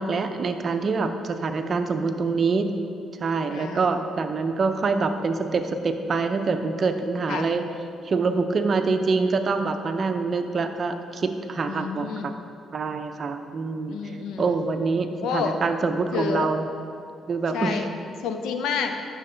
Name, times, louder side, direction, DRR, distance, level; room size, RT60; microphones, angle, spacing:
voice 1, 0.0-2.7 3.2-7.6 8.0-12.3 12.7-14.0 14.4-16.7 17.3-17.8, right 4 dB, 45° right, 7 dB, 0.6 m, -25 dB
voice 2, 3.5-3.9 7.3-7.5 11.7-12.3 13.9-14.6 15.2-15.6 16.1-16.5 17.5-17.9 18.2-19.0, left 6 dB, 85° left, 6 dB, 0.6 m, -29 dB
9.8 x 6.5 x 3.9 m, 2.5 s
cardioid pair, 90°, 0 cm